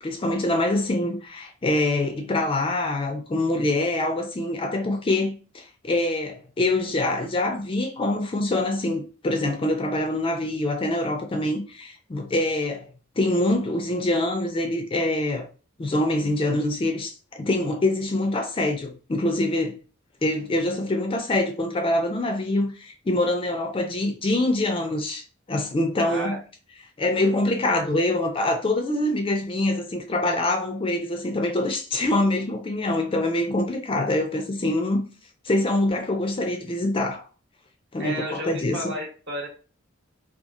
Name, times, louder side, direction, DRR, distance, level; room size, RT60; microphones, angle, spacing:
voice 1, 0.0-12.9 13.2-15.5 15.8-19.8 20.2-25.2 25.5-26.4 27.0-35.0 35.4-37.2 37.9-38.9, left 1 dB, 25° left, 0.4 m, -25 dB
voice 2, 26.1-26.4 38.0-39.5, equal, 55° right, 1.0 m, -32 dB
2.8 x 2.3 x 2.4 m
head